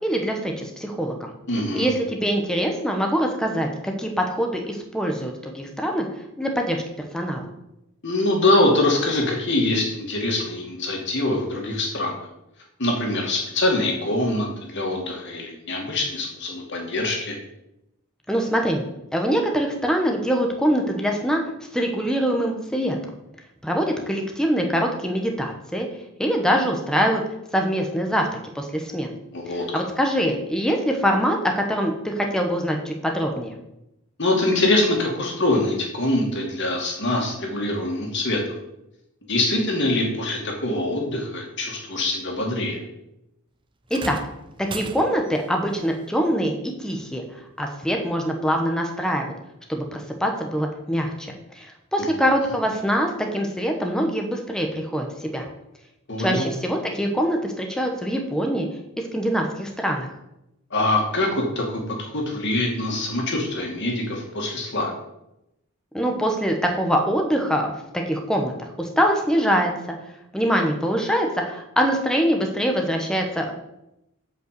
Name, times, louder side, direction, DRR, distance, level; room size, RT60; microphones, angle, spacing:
voice 1, 0.0-1.3 1.7-6.1 6.4-6.8 7.1-7.4 18.3-18.8 19.1-21.4 21.7-23.0 23.6-25.9 26.2-27.2 27.5-28.3 28.5-29.1 29.7-33.5 43.9-44.2 44.6-47.2 47.6-49.3 49.7-55.5 56.2-58.7 59.1-60.1 65.9-69.7 70.3-73.5, equal, 5° left, 2 dB, 1.2 m, -24 dB
voice 2, 1.5-1.9 8.0-12.1 12.8-17.4 29.3-29.6 34.2-38.4 39.2-42.8 52.0-52.1 56.1-56.5 60.7-64.9, left 2 dB, 55° left, 1 dB, 2.5 m, -24 dB
sound 1, 43.9-45.4 46.9-47.0 47.9-48.0, right 3 dB, 20° right, 0.6 m, -37 dB
7.8 x 5.6 x 7.8 m, 0.87 s
head